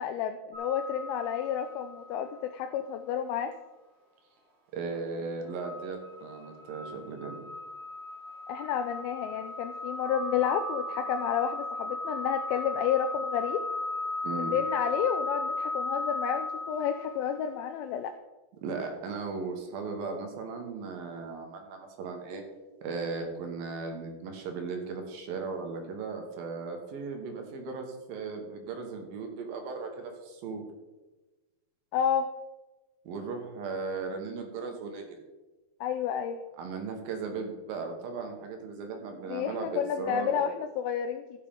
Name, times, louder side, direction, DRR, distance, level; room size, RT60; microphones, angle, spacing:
voice 1, 0.0-3.5 8.5-13.6 14.3-18.1 31.9-32.3 35.8-36.4 39.3-41.2, left 8 dB, 85° left, 7 dB, 2.4 m, -30 dB
sound 1, 0.5-2.4 2.8-2.9 5.6-17.4, left 2 dB, 50° right, 2.5 m, -36 dB
voice 2, 4.7-7.4 14.2-14.6 18.6-22.4 22.8-30.6 33.1-35.2 36.6-40.5, right 4 dB, 80° right, 3 dB, 3.1 m, -37 dB
14.0 x 7.1 x 3.6 m, 1.1 s
omnidirectional pair, 4.2 m